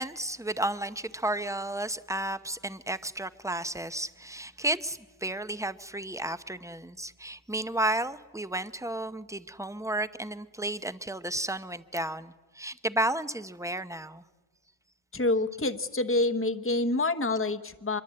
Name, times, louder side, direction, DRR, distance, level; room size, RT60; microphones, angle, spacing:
voice 1, 0.0-14.2, right 1 dB, 5° right, 11 dB, 0.6 m, -32 dB
voice 2, 15.1-18.0, left 2 dB, 15° left, 9 dB, 1.0 m, -27 dB
25.5 x 22.5 x 8.7 m, 1.3 s
omnidirectional pair, 1.1 m